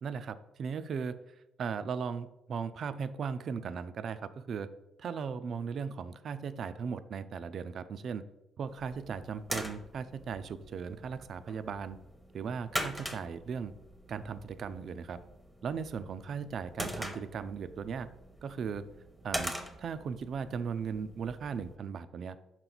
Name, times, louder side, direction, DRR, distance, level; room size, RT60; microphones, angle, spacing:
voice 1, 0.0-1.2 1.6-4.7 5.0-8.2 8.6-12.0 12.3-13.7 14.1-15.2 15.6-18.1 18.4-18.9 19.2-19.5 19.8-22.4, right 6 dB, 60° right, 12 dB, 0.4 m, -37 dB
sound 1, 8.7-21.8, equal, ahead, 0.8 m, -43 dB
6.0 x 4.4 x 3.9 m, 0.89 s
cardioid pair, 90°, 0 cm